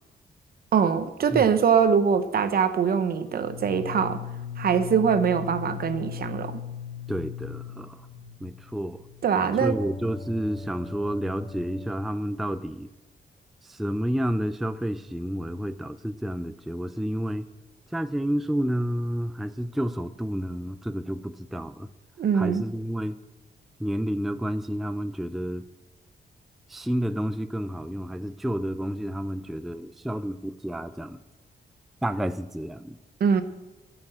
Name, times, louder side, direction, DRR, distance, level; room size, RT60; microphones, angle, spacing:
voice 1, 0.7-4.2 4.6-6.6 9.2-9.8 22.2-22.7 33.2-33.4, right 7 dB, 60° right, 10 dB, 1.0 m, -23 dB
sound 1, 3.2-11.9, left 7 dB, 35° left, 3.1 m, -39 dB
voice 2, 7.1-8.0 8.4-9.0 9.6-12.9 13.6-17.5 17.9-21.9 22.3-23.2 23.8-25.6 26.7-31.2 32.0-33.0, equal, ahead, 11 dB, 0.4 m, -30 dB
15.0 x 6.1 x 7.8 m, 1.1 s
wide cardioid pair, 160°, 17 cm